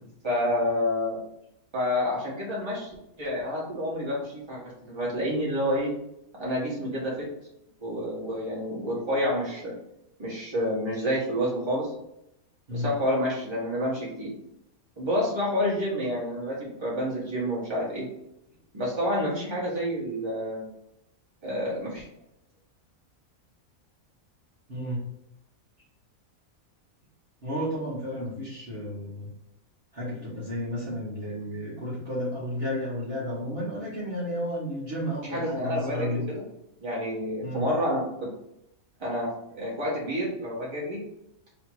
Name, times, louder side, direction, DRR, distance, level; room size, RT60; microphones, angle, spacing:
voice 1, 0.2-1.2 1.7-5.9 6.4-7.3 7.8-9.7 10.2-11.9 12.7-14.3 15.0-18.1 18.7-20.7 21.4-22.1 35.2-36.4 36.8-38.3 39.0-41.0, equal, 20° right, -6 dB, 1.4 m, -29 dB
voice 2, 24.7-25.0 27.4-29.3 29.9-36.3 37.4-37.6, equal, 45° right, -8 dB, 1.4 m, -32 dB
3.3 x 2.9 x 4.4 m, 0.81 s
omnidirectional pair, 1.5 m